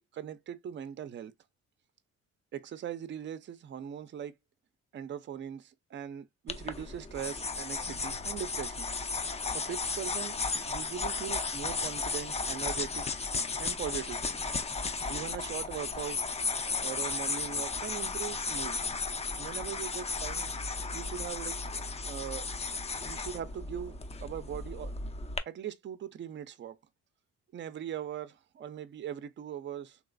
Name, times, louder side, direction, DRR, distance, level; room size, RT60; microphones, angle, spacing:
voice 1, 0.0-1.3 2.5-4.3 4.9-8.9 9.5-10.4 10.7-13.1 13.6-14.2 15.1-16.2 16.8-18.8 19.4-21.6 22.1-22.5 22.9-24.9 25.5-26.8 27.5-30.0, right 9 dB, 40° right, 0.4 m, -40 dB
sound 1, 6.5-25.4, left 4 dB, 20° left, 0.4 m, -35 dB
3.0 x 2.9 x 2.4 m
cardioid pair, 90°, 30 cm